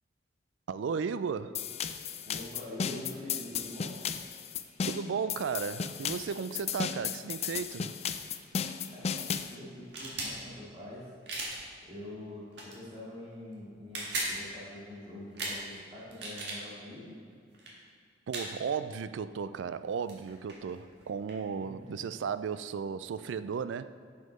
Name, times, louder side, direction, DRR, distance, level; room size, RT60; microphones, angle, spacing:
voice 1, 0.7-1.6 4.9-7.9 18.3-23.9, right 6 dB, 90° right, 0.3 m, -35 dB
sound 1, 1.5-9.5, left 7 dB, 35° left, 0.4 m, -35 dB
voice 2, 2.2-3.9 8.9-9.2 9.5-11.1 11.8-17.2 21.6-22.1, left 1 dB, 30° right, 2.4 m, -45 dB
sound 2, 9.8-10.3 11.3-11.6 12.5-12.8 13.8-14.3 15.3-15.6 16.1-16.6 17.5-17.7 18.3-18.5 19.8-19.9 20.1-21.4, right 2 dB, 70° right, 1.9 m, -36 dB
7.3 x 6.6 x 5.3 m
head